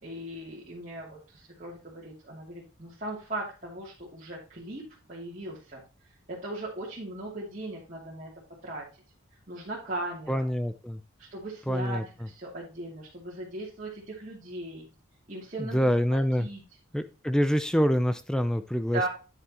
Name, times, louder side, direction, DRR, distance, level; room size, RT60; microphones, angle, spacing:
voice 1, 0.0-5.8 6.3-8.3 8.6-8.8 9.5-10.4 11.2-14.9 15.3-16.6 18.9-19.1, right 2 dB, 35° right, -7 dB, 2.6 m, -38 dB
voice 2, 10.3-11.0 11.7-12.0 15.7-16.5 16.9-19.1, equal, 5° left, 11 dB, 0.4 m, -26 dB
9.5 x 7.2 x 2.9 m, 0.33 s
head